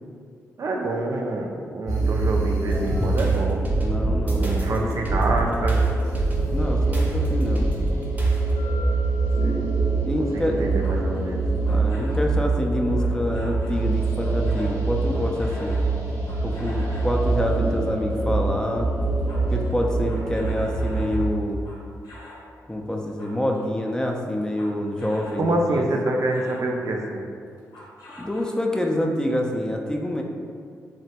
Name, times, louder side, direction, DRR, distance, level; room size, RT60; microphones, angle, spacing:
voice 1, 0.6-3.6 4.3-5.8 9.4-9.7 10.3-11.4 25.4-27.3, right 2 dB, 55° right, 0 dB, 0.4 m, -26 dB
sound 1, 1.9-21.2, right 3 dB, 85° right, 0.8 m, -24 dB
sound 2, 2.7-8.6, right 1 dB, 25° right, 0.7 m, -29 dB
voice 2, 3.8-4.9 6.5-7.7 10.1-10.6 11.7-15.8 16.4-18.9 19.5-21.6 22.7-25.8 28.2-30.2, left 1 dB, 10° left, 1 dB, 0.4 m, -27 dB
sound 3, 10.6-12.3 13.0-13.9 14.2-17.2 18.3-18.6 18.8-22.5 22.9-25.5 25.9-26.7 27.6-28.8, left 1 dB, 80° left, 0.7 m, -46 dB
3.0 x 2.1 x 2.8 m, 2.2 s
cardioid pair, 55°, 6 cm